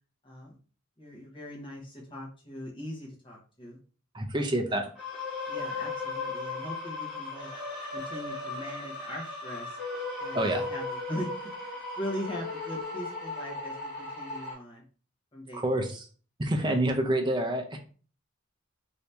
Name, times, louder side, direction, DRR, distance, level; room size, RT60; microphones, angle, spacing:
voice 1, 0.2-0.6 1.0-3.8 4.4-4.8 5.5-7.5 7.9-9.8 10.2-11.3 11.5-14.8 15.3-15.6, equal, 25° left, -1 dB, 1.2 m, -40 dB
voice 2, 4.1-4.9 10.3-10.6 15.5-16.1 16.4-17.8, right 1 dB, 20° right, 4 dB, 0.6 m, -27 dB
sound 1, 5.0-14.5, left 3 dB, 5° right, 1.5 m, -36 dB
3.0 x 2.7 x 3.3 m, 0.39 s
head